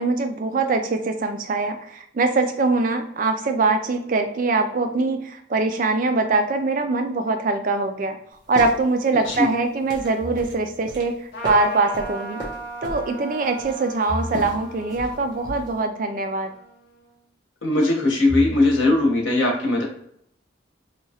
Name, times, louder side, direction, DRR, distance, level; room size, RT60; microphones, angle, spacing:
voice 1, 0.0-8.2 8.5-12.4 12.8-16.5, right 3 dB, 45° right, 6 dB, 0.4 m, -23 dB
sound 1, 8.3-15.8, equal, 20° right, 0.7 m, -37 dB
sound 2, 10.2-11.0 14.1-15.1 18.3-19.2, equal, 25° left, 0.9 m, -34 dB
Trumpet, 11.3-17.1, right 2 dB, 55° left, 0.6 m, -38 dB
voice 2, 17.6-19.8, left 2 dB, 85° left, 0 dB, 0.9 m, -19 dB
2.9 x 2.3 x 2.8 m, 0.70 s
head